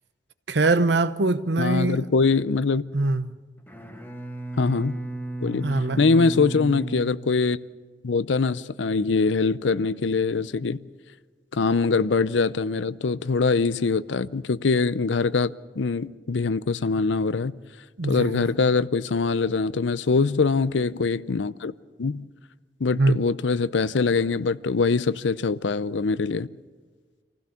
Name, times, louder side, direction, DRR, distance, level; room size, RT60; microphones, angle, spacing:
voice 1, 0.5-2.0 2.9-3.3 5.6-6.0 18.0-18.5 22.9-23.2, right 3 dB, 70° right, 0.9 m, -22 dB
voice 2, 1.6-2.8 4.6-5.0 5.4-7.6 8.0-10.8 11.5-17.5 18.1-21.7 22.0-22.2 22.8-26.5, left 4 dB, 90° left, 0.6 m, -23 dB
Bowed string instrument, 3.6-7.9, right 2 dB, 10° left, 1.7 m, -35 dB
26.5 x 16.0 x 7.0 m
head